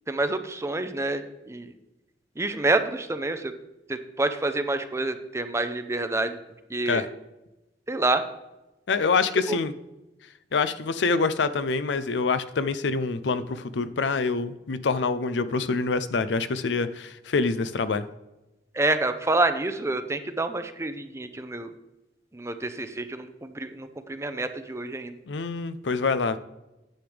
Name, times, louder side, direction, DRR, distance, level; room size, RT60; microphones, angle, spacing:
voice 1, 0.1-1.7 2.4-3.5 3.9-6.4 6.7-7.0 7.9-8.2 18.7-21.7 22.3-25.1, right 2 dB, 15° right, 9 dB, 0.6 m, -27 dB
voice 2, 8.9-9.7 10.5-18.1 25.3-26.4, left 4 dB, 85° left, 13 dB, 0.5 m, -26 dB
10.0 x 7.8 x 3.3 m, 0.98 s
head